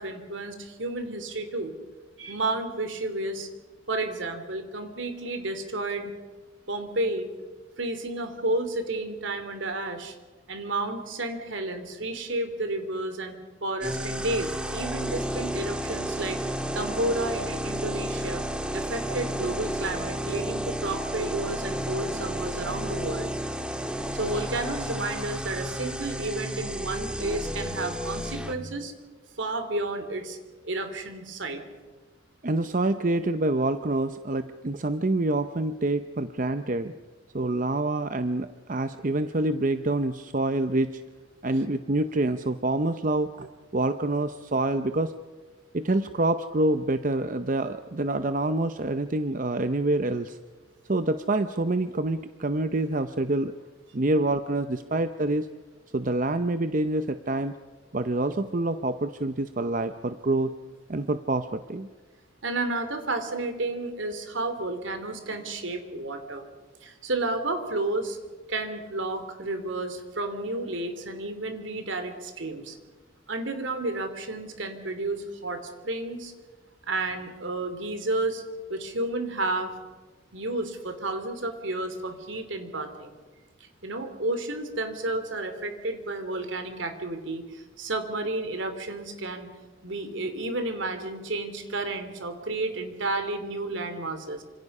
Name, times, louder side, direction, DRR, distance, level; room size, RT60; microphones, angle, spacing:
voice 1, 0.0-1.7 2.2-3.5 3.9-6.1 6.7-7.3 7.8-10.1 10.5-16.4 16.7-18.4 18.7-23.3 24.1-28.9 29.4-30.4 30.6-31.6 62.4-66.5 66.8-68.2 68.5-72.8 73.3-76.3 76.9-78.4 78.7-79.9 80.3-83.2 83.8-89.5 89.8-94.4, right 2 dB, 70° right, 8 dB, 3.1 m, -31 dB
sound 1, 13.8-28.5, equal, 5° right, 1.6 m, -32 dB
voice 2, 32.4-36.9 37.3-41.0 41.4-45.2 45.7-50.4 50.9-53.5 53.9-55.5 55.9-57.5 57.9-60.5 60.9-61.9, right 2 dB, 40° right, 10 dB, 0.7 m, -26 dB
28.0 x 26.5 x 5.5 m, 1.3 s
head